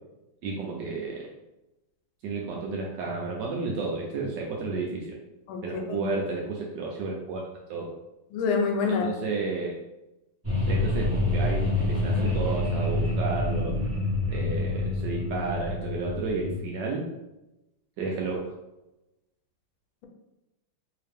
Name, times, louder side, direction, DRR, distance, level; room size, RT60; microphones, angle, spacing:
voice 1, 0.4-1.2 2.2-5.1 5.6-7.4 7.7-7.9 8.9-9.8 10.6-13.7 14.3-17.1 18.0-18.5, right 3 dB, 75° right, -1 dB, 1.0 m, -32 dB
voice 2, 5.5-6.1 8.3-9.1, left 5 dB, 80° left, 3 dB, 1.4 m, -27 dB
sound 1, 10.4-16.7, left 2 dB, 10° right, 0.6 m, -27 dB
3.1 x 2.8 x 3.3 m, 0.95 s
omnidirectional pair, 2.3 m